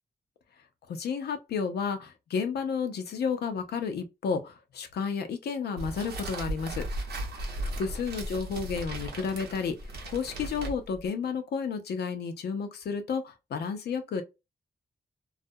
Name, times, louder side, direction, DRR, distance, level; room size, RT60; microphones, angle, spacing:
voice 1, 0.9-6.8 7.6-9.8 10.1-14.2, left 6 dB, 85° left, 0.5 m, -32 dB
sound 1, 5.8-11.1, right 1 dB, 90° right, 0.7 m, -36 dB
2.3 x 2.0 x 2.6 m
cardioid pair, 65°, 16 cm